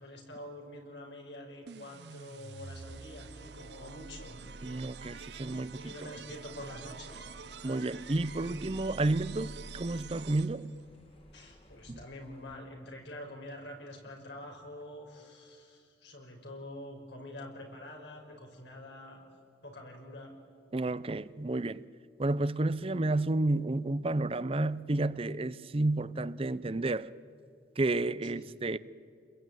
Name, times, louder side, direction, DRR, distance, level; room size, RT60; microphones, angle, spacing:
voice 1, 0.0-4.4 5.7-7.3 11.3-19.2 19.6-20.3 28.3-28.5, left 1 dB, 85° left, 5.7 m, -46 dB
sound 1, 1.7-10.8, right 4 dB, 70° right, 0.7 m, -46 dB
sound 2, 2.7-12.6, equal, 30° left, 2.1 m, -60 dB
voice 2, 4.6-6.1 7.6-10.7 11.9-12.0 20.7-21.8 22.2-27.1 27.8-28.8, right 2 dB, 30° right, 0.6 m, -31 dB
29.5 x 21.5 x 9.2 m
head